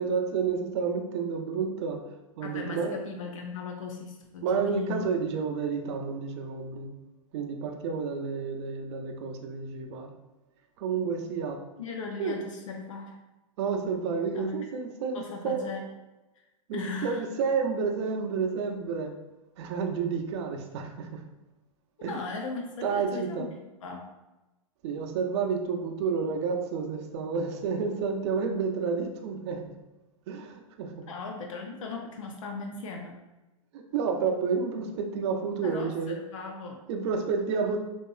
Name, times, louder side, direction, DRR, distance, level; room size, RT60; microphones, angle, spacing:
voice 1, 0.0-2.1 2.4-3.0 4.4-7.0 7.3-10.1 10.8-11.6 12.2-12.4 13.6-15.6 16.7-19.1 19.6-21.2 22.0-22.2 22.8-23.5 24.8-29.8 30.3-31.0 33.7-36.2 36.9-37.8, right 5 dB, 50° right, 3 dB, 0.6 m, -30 dB
voice 2, 2.4-5.1 11.8-13.2 14.3-14.6 15.1-15.8 16.7-17.2 22.0-23.5 23.8-24.1 31.1-33.2 35.6-36.8, left 4 dB, 65° left, 2 dB, 0.6 m, -37 dB
4.3 x 2.7 x 2.3 m, 1.0 s
hypercardioid pair, 120°, 18 cm